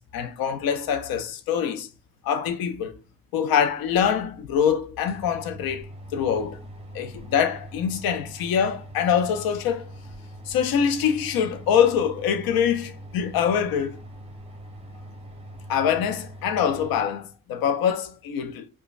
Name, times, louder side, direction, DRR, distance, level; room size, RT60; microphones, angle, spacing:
voice 1, 0.1-1.9 2.2-3.0 3.3-5.9 6.1-6.6 6.9-9.9 10.5-14.0 15.7-18.7, left 8 dB, 80° left, 0.5 m, -24 dB
sound 1, 3.9-4.0 4.5-4.6 4.9-17.0, equal, 15° right, 0.8 m, -42 dB
3.0 x 2.2 x 2.4 m
cardioid pair, 65°, 35 cm